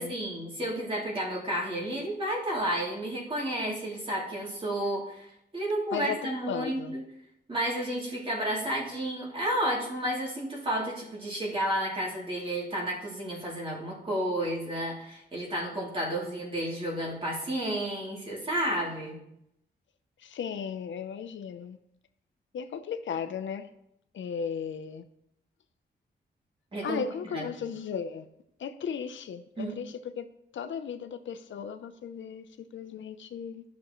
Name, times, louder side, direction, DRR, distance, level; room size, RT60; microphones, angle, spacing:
voice 1, 0.0-5.3 5.5-7.0 7.5-19.2 26.7-27.0 27.3-27.5 29.6-29.7, right 1 dB, 30° right, -4 dB, 2.8 m, -31 dB
voice 2, 5.9-7.0 20.2-21.8 22.5-23.7 24.1-25.0 26.8-28.3 28.6-30.3 30.5-33.6, left 7 dB, 80° left, 9 dB, 0.7 m, -36 dB
15.0 x 6.2 x 3.1 m, 0.79 s
wide cardioid pair, 140°, 19 cm